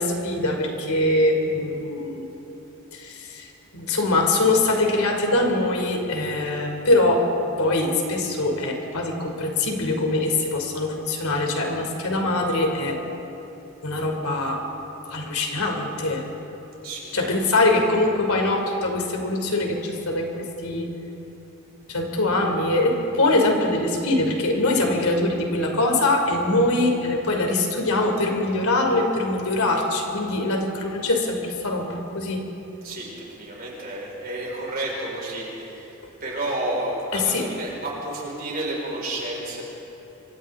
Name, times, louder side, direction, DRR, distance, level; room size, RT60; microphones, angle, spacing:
voice 1, 0.0-2.3 2.9-3.5 3.7-7.3 7.6-13.0 13.8-14.6 15.1-16.2 17.1-20.9 21.9-32.5 37.1-37.5, left 2 dB, 85° left, 2 dB, 3.3 m, -23 dB
voice 2, 16.8-17.4 32.8-35.9 36.2-39.6, right 1 dB, 40° right, -3 dB, 5.4 m, -31 dB
27.5 x 25.0 x 3.8 m, 3.0 s
head